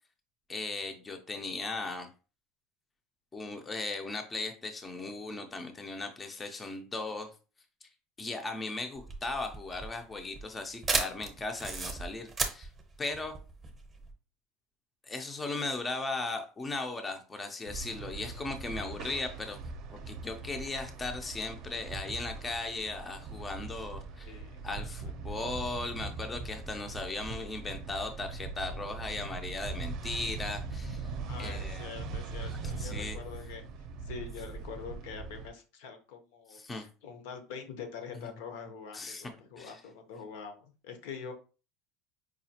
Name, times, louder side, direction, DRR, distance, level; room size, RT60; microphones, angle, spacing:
voice 1, 0.5-2.1 3.3-7.3 8.2-12.7 13.0-13.3 15.0-19.6 19.9-24.4 24.6-31.1 31.4-31.9 32.4-33.2 36.5-36.9 38.9-39.3 39.6-39.8, left 3 dB, 15° left, 6 dB, 0.4 m, -37 dB
sound 1, 9.0-14.1, right 4 dB, 15° right, 0.7 m, -34 dB
sound 2, 17.7-35.5, right 4 dB, 50° right, 0.5 m, -41 dB
voice 2, 31.2-33.6 34.0-41.3, left 6 dB, 80° left, 7 dB, 0.8 m, -44 dB
4.8 x 2.3 x 2.8 m, 0.34 s
cardioid pair, 145°, 0 cm